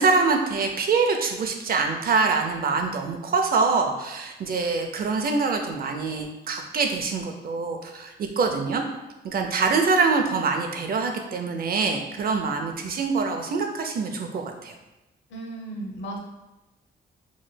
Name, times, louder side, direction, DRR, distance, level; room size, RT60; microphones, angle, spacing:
voice 1, 0.0-8.8 9.2-14.7, right 4 dB, 55° right, 4 dB, 0.5 m, -24 dB
voice 2, 15.3-16.2, right 2 dB, 90° left, 0 dB, 0.8 m, -35 dB
4.9 x 3.1 x 2.2 m, 1.0 s
wide cardioid pair, 130°, 18 cm